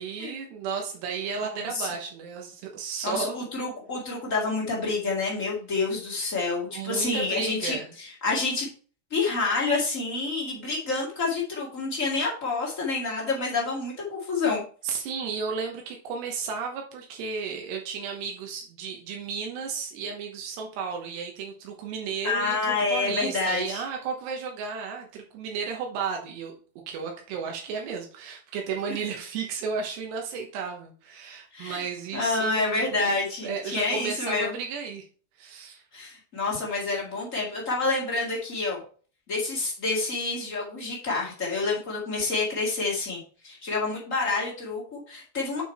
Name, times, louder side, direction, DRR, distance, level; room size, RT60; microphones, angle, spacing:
voice 1, 0.0-3.4 6.7-7.9 14.8-26.5 26.9-33.0 33.4-35.0 35.4-35.8, right 5 dB, 85° right, 2 dB, 3.3 m, -33 dB
voice 2, 1.4-1.9 3.0-8.7 9.1-14.6 22.2-23.8 31.5-31.8 32.1-34.6 35.9-38.8 39.3-45.6, left 3 dB, 35° left, -4 dB, 1.3 m, -28 dB
8.7 x 4.7 x 4.4 m, 0.41 s
omnidirectional pair, 4.8 m